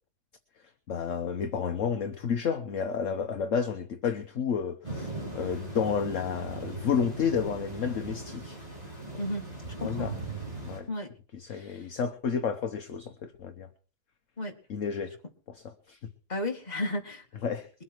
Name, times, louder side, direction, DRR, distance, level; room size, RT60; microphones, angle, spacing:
voice 1, 0.9-8.6 9.8-10.1 10.6-10.9 11.3-13.7 14.7-15.1 15.5-16.0 17.4-17.7, left 6 dB, 55° left, 7 dB, 1.3 m, -31 dB
sound 1, 4.8-10.8, right 2 dB, 20° right, 6.0 m, -38 dB
voice 2, 9.8-10.1 10.9-11.1 11.5-11.9 14.4-14.6 16.3-17.3, left 1 dB, 25° left, 2 dB, 2.3 m, -33 dB
22.0 x 8.4 x 4.6 m, 0.38 s
omnidirectional pair, 1.8 m